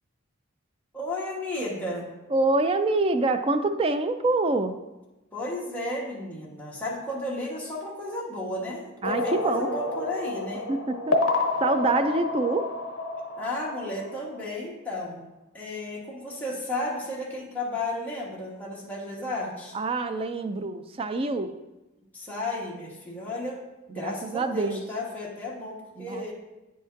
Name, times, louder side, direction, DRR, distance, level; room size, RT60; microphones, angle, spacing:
voice 1, 0.9-2.1 5.3-10.7 13.4-15.2 15.5-19.8 22.1-23.6 23.9-26.3, left 1 dB, 10° left, -5 dB, 1.2 m, -33 dB
voice 2, 2.3-4.8 9.0-9.7 10.7-12.7 19.7-21.5 23.9-24.8 26.0-26.2, right 2 dB, 25° right, 9 dB, 0.3 m, -26 dB
sound 1, 9.0-14.4, left 2 dB, 65° left, 0.7 m, -29 dB
8.9 x 5.0 x 2.6 m, 1.0 s
head